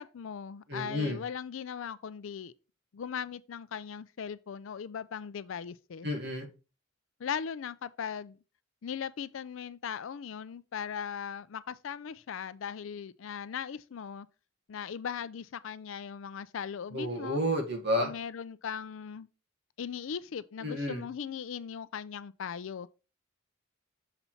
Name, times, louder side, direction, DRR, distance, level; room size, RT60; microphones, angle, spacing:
voice 1, 0.0-2.5 2.9-6.1 7.2-8.4 8.8-14.3 14.7-17.5 18.0-19.3 19.8-22.9, left 7 dB, 65° left, 0.4 m, -38 dB
voice 2, 0.7-1.2 6.0-6.5 16.9-18.1 20.6-21.0, equal, 55° right, 1.6 m, -31 dB
6.9 x 4.1 x 4.4 m
head